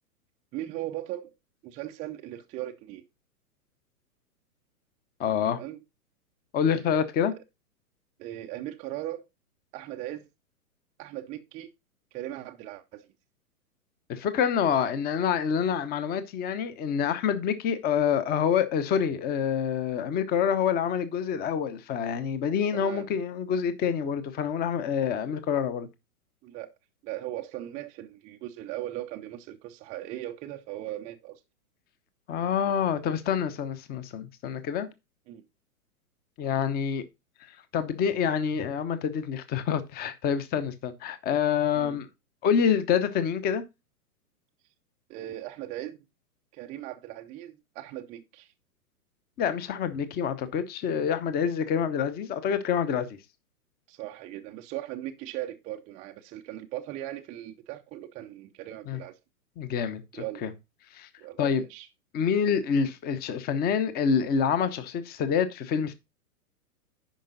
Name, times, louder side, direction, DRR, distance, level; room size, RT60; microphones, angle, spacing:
voice 1, 0.5-1.3 1.6-3.0 5.6-5.8 7.3-7.4 8.2-9.2 9.7-10.3 11.0-11.7 12.1-13.1 22.7-23.1 26.4-26.7 27.0-31.4 35.3-35.4 41.7-42.0 45.1-46.0 46.5-48.5 53.9-59.2 60.1-60.4 61.2-61.9, right 14 dB, 15° right, 0.5 m, -38 dB
voice 2, 5.2-5.6 6.5-7.3 14.1-25.9 32.3-34.9 36.4-37.0 37.7-42.1 42.4-43.6 49.4-53.2 58.9-59.0 59.6-60.5 60.9-61.1 61.4-61.6 62.1-65.9, left 7 dB, 20° left, 0.9 m, -27 dB
10.5 x 5.2 x 3.9 m
figure-of-eight pair, 115°, 45 cm